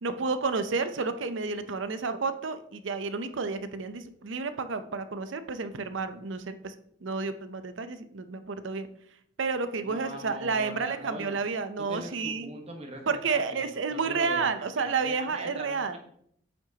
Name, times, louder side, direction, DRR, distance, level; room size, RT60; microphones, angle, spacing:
voice 1, 0.0-6.7 7.0-8.9 9.4-12.5 13.1-16.0, right 4 dB, 75° right, 10 dB, 0.6 m, -31 dB
voice 2, 9.8-11.4 11.8-16.0, right 1 dB, 30° right, 3 dB, 1.3 m, -42 dB
8.7 x 6.0 x 2.9 m, 0.67 s
head